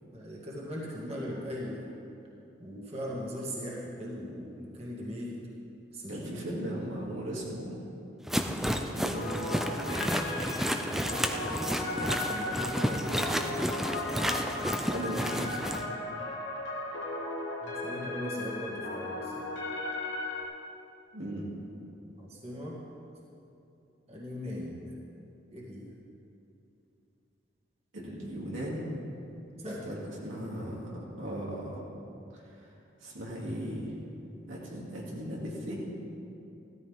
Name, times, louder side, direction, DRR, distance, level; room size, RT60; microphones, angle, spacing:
voice 1, 0.1-1.9 2.6-5.4 5.9-6.6 12.3-13.6 17.6-19.5 22.2-22.8 24.1-24.9 25.5-25.9 29.6-30.0, equal, 30° right, -5 dB, 2.0 m, -39 dB
voice 2, 6.1-7.7 8.7-9.3 14.9-15.5 21.1-21.4 27.9-28.8 29.9-31.8 33.0-33.9 34.5-35.8, equal, 90° right, -5 dB, 2.7 m, -37 dB
sound 1, 8.3-15.8, equal, ahead, 0.5 m, -31 dB
sound 2, 9.1-20.4, left 2 dB, 70° left, 1.9 m, -36 dB
16.5 x 13.5 x 3.6 m, 2.8 s
head